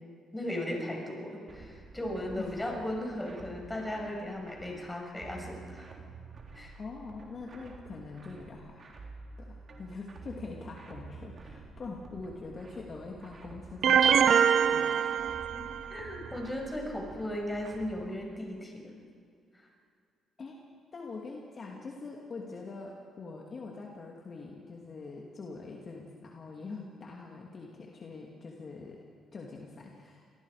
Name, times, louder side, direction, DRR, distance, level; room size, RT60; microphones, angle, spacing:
voice 1, 0.3-5.9 6.5-6.7 15.5-15.6 15.9-18.9, left 1 dB, 15° left, 1 dB, 6.3 m, -36 dB
sound 1, 1.5-18.1, right 4 dB, 45° right, 3.6 m, -50 dB
voice 2, 6.7-8.9 9.4-14.4 14.7-15.0 20.4-20.6 20.9-29.0 29.3-30.2, left 3 dB, 45° left, -1 dB, 2.7 m, -43 dB
sound 2, 13.8-15.9, right 8 dB, 65° right, 0.8 m, -24 dB
27.0 x 19.0 x 5.1 m, 2.3 s
cardioid pair, 90°, 0 cm